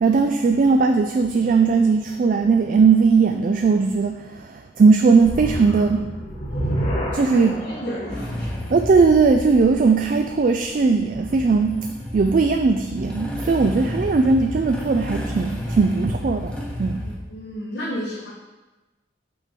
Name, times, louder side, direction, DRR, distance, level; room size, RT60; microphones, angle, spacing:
voice 1, 0.0-6.1 7.1-7.5 8.7-11.9 12.1-16.5 16.8-17.1, right 4 dB, 45° right, 5 dB, 0.3 m, -18 dB
sound 1, 5.2-10.4, equal, 40° left, 1.2 m, -30 dB
voice 2, 7.3-8.5 17.0-18.3, equal, 75° left, -6 dB, 1.3 m, -32 dB
Motorcycle / Engine starting, 8.1-17.2, left 1 dB, 5° left, 1.0 m, -32 dB
6.1 x 5.2 x 4.4 m, 1.1 s
head